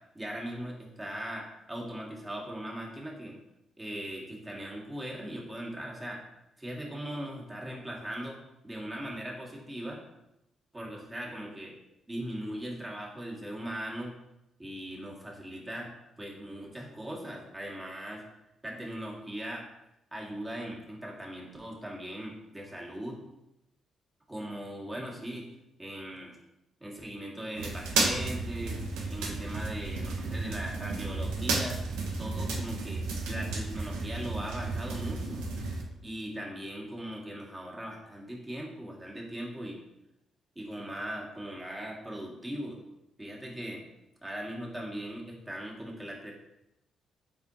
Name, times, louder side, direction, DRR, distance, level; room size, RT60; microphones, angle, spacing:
voice 1, 0.1-3.4 3.8-6.2 6.6-10.0 10.7-11.7 12.1-14.1 14.6-15.9 16.2-18.2 18.6-19.6 20.1-23.2 24.3-25.5 25.8-26.4 26.8-28.8 29.1-31.8 32.2-35.5 36.0-39.8 40.6-42.8 43.2-43.8 44.2-46.3, right 1 dB, 20° right, -3 dB, 2.1 m, -39 dB
sound 1, 27.6-35.8, right 3 dB, 80° right, 0.9 m, -33 dB
7.9 x 4.4 x 2.9 m, 0.88 s
hypercardioid pair, 45°, 0 cm